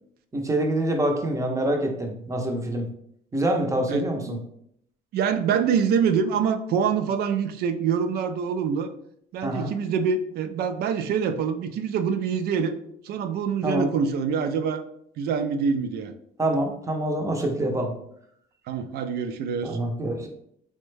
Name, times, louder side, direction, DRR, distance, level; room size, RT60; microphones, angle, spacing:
voice 1, 0.3-2.9 3.3-4.4 9.4-9.7 13.6-13.9 16.4-18.0 19.6-20.3, right 1 dB, 20° right, 3 dB, 0.6 m, -26 dB
voice 2, 3.9-4.4 5.1-8.9 9.3-12.7 13.0-14.8 15.2-16.1 18.7-19.8, right 6 dB, 70° right, 10 dB, 0.4 m, -25 dB
3.5 x 2.1 x 3.2 m, 0.70 s
cardioid pair, 110°, 17 cm